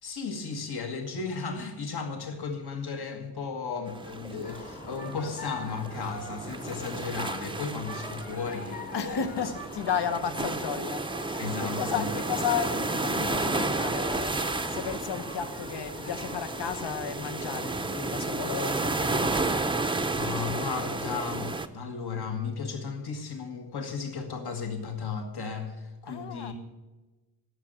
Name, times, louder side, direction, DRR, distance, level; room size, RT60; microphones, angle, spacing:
voice 1, 0.0-9.2 11.4-12.1 20.1-26.5, left 5 dB, 70° left, 1.7 m, -35 dB
sound 1, 3.9-21.7, right 2 dB, 15° right, 0.5 m, -32 dB
sound 2, 4.4-17.1, left 2 dB, 20° left, 0.9 m, -44 dB
voice 2, 8.9-19.3 26.1-26.5, left 7 dB, 85° left, 1.0 m, -33 dB
12.0 x 6.6 x 9.2 m
wide cardioid pair, 165°, 40 cm